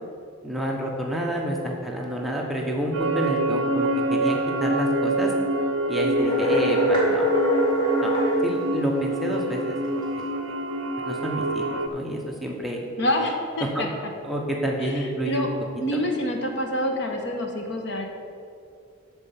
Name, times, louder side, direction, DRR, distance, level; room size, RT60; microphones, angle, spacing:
voice 1, 0.4-5.3 5.9-7.3 7.5-7.6 8.0-8.1 8.4-9.8 10.2-10.3 11.0-12.8 13.6-13.9 14.2-15.5 15.9-16.0, right 1 dB, ahead, -2 dB, 0.9 m, -29 dB
sound 1, 2.9-11.9, right 1 dB, 65° right, 0.6 m, -26 dB
sound 2, 6.2-8.3, equal, 20° left, 2.0 m, -23 dB
voice 2, 13.0-13.9 14.8-15.0 15.2-15.5 15.8-18.1, equal, 55° left, 3 dB, 1.1 m, -26 dB
13.5 x 4.5 x 5.7 m, 2.4 s
head